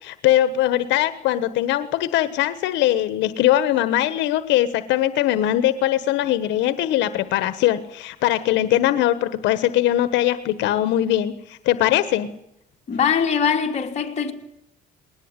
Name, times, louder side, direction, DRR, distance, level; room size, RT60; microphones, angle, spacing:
voice 1, 0.0-12.3, left 13 dB, 85° left, 1.3 m, -21 dB
voice 2, 12.9-14.3, left 7 dB, 40° left, 3.3 m, -22 dB
20.5 x 19.5 x 9.8 m
cardioid pair, 135°, 18 cm